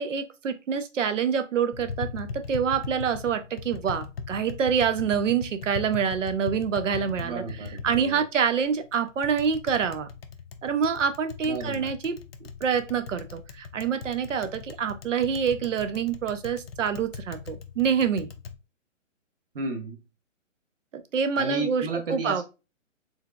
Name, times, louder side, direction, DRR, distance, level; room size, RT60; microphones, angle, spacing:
voice 1, 0.0-7.4 7.8-10.1 10.6-12.2 12.6-18.3 20.9-22.4, right 7 dB, 70° right, 0.8 m, -26 dB
Tap, 1.7-18.5, left 6 dB, 50° left, 0.5 m, -40 dB
voice 2, 7.0-8.2 11.5-11.9 19.5-20.0 21.4-22.4, right 3 dB, 45° right, 1.1 m, -32 dB
4.5 x 3.4 x 2.4 m
hypercardioid pair, 170°, 39 cm